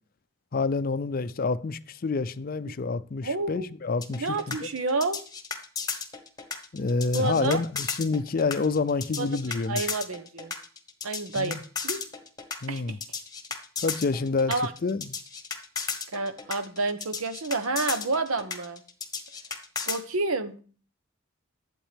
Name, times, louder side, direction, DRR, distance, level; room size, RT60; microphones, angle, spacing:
voice 1, 0.5-4.7 6.7-9.8 11.4-11.6 12.6-13.0 13.8-14.5 14.8-15.1, left 4 dB, 45° left, 0.4 m, -28 dB
voice 2, 3.2-3.7 4.1-5.2 7.1-7.6 9.2-9.3 9.7-10.5 11.0-12.0 12.7-13.0 14.5-14.7 16.1-18.8 19.9-20.6, right 3 dB, 80° right, 1.0 m, -29 dB
sound 1, 4.0-20.0, left 6 dB, 15° left, 1.2 m, -34 dB
11.5 x 8.1 x 3.4 m
head